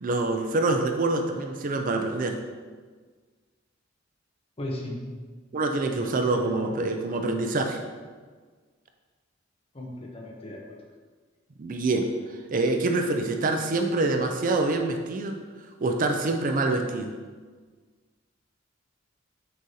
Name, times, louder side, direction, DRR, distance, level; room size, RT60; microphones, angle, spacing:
voice 1, 0.0-2.4 5.5-7.8 11.6-12.1 12.5-15.4 15.8-17.1, right 2 dB, 45° right, 5 dB, 0.4 m, -26 dB
voice 2, 4.6-5.0 5.9-6.1 6.3-6.7 9.7-10.8, left 1 dB, 30° left, 0 dB, 0.9 m, -36 dB
6.3 x 5.4 x 2.8 m, 1.5 s
head